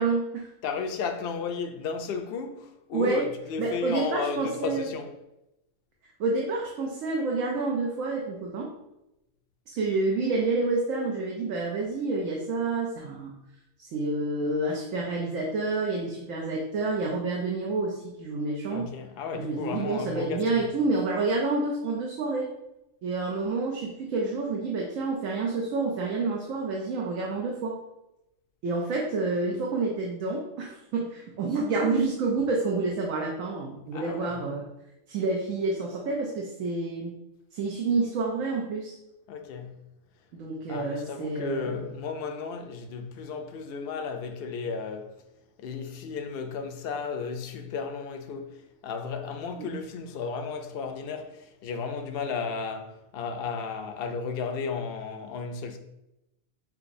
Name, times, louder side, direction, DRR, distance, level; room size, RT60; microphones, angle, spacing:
voice 1, 0.0-0.5 2.9-3.3 3.6-4.9 6.2-8.7 9.7-13.3 13.8-18.9 19.3-22.5 23.0-27.8 28.6-34.7 35.1-37.1 37.5-39.0 40.3-41.8 49.6-49.8, right 3 dB, 75° right, 1.1 m, -28 dB
voice 2, 0.6-5.1 18.7-20.6 33.9-34.4 39.3-39.8 40.7-45.1 45.6-55.8, left 5 dB, 60° left, 0.6 m, -34 dB
5.9 x 3.0 x 2.6 m
omnidirectional pair, 1.4 m